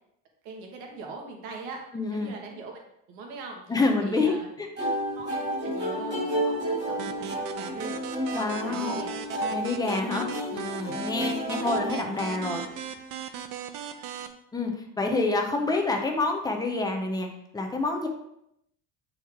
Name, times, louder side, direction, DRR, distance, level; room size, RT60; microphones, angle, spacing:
voice 1, 0.4-1.8 2.1-2.8 3.1-3.7 4.0-4.5 5.2-8.0 8.3-9.2 11.2-11.7, right 3 dB, 75° right, 1 dB, 1.5 m, -41 dB
voice 2, 1.9-2.3 3.7-4.9 8.3-8.9 9.5-12.6 14.5-17.3 17.5-18.1, left 3 dB, 10° left, 3 dB, 0.4 m, -28 dB
sound 1, 4.8-12.7, equal, 25° right, 1.6 m, -31 dB
sound 2, 7.0-14.3, right 9 dB, 50° right, 0.6 m, -38 dB
8.5 x 4.7 x 3.5 m, 0.77 s
cardioid pair, 180°, 41 cm